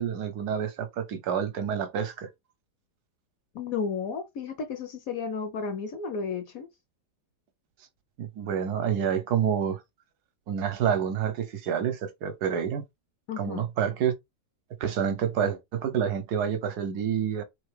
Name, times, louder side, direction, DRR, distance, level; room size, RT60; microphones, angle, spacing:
voice 1, 0.0-2.3 8.2-9.8 10.5-12.8 13.4-14.1 14.8-17.4, right 8 dB, 70° right, 1.2 m, -28 dB
voice 2, 3.5-6.7 13.3-13.6, left 5 dB, 65° left, 0.9 m, -33 dB
3.8 x 3.5 x 3.2 m
omnidirectional pair, 1.9 m